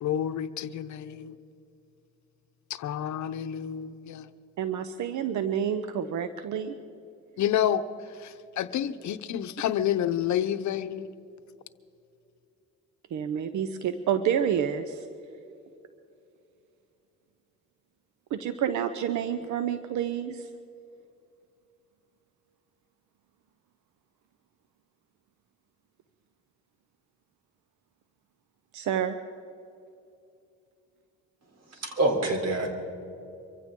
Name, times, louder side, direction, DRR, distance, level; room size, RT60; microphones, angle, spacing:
voice 1, 0.0-1.4 2.8-4.3 7.4-7.8 8.2-11.1, left 10 dB, 70° left, 0.8 m, -29 dB
voice 2, 4.6-6.7 13.1-15.1 18.3-20.5 28.7-29.2, right 8 dB, 75° right, 0.8 m, -29 dB
voice 3, 31.7-32.7, right 2 dB, 60° right, 3.5 m, -26 dB
24.0 x 15.5 x 3.7 m
cardioid pair, 90°, 30 cm